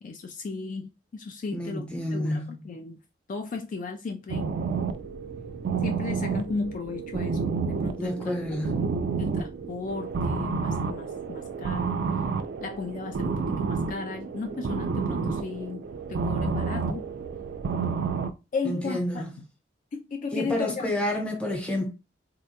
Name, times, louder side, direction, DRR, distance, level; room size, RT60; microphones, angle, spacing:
voice 1, 0.0-3.0 3.3-4.5 5.8-8.8 9.2-12.0 12.6-17.0 18.5-19.2 19.9-20.9, left 4 dB, 45° left, 0.3 m, -35 dB
voice 2, 1.5-2.7 8.0-8.8 18.6-19.3 20.3-21.9, left 1 dB, 5° left, 0.9 m, -29 dB
sound 1, 4.3-18.3, right 5 dB, 60° right, 0.3 m, -30 dB
3.6 x 2.2 x 2.8 m
head